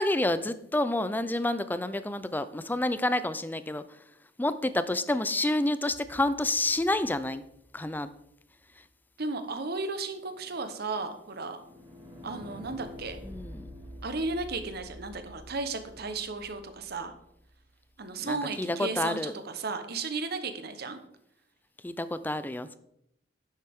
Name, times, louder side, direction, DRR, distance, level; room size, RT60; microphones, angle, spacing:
voice 1, 0.0-3.8 4.4-7.4 7.7-8.1 13.3-13.7 18.2-19.3 21.8-22.8, left 1 dB, 10° left, 13 dB, 0.4 m, -29 dB
sound 1, 5.9-8.0 9.9-17.9, equal, 30° right, 3.0 m, -49 dB
voice 2, 9.2-11.6 12.2-13.2 14.0-17.1 18.0-21.0, right 3 dB, 55° right, 9 dB, 1.0 m, -34 dB
10.0 x 7.7 x 3.6 m, 0.76 s
head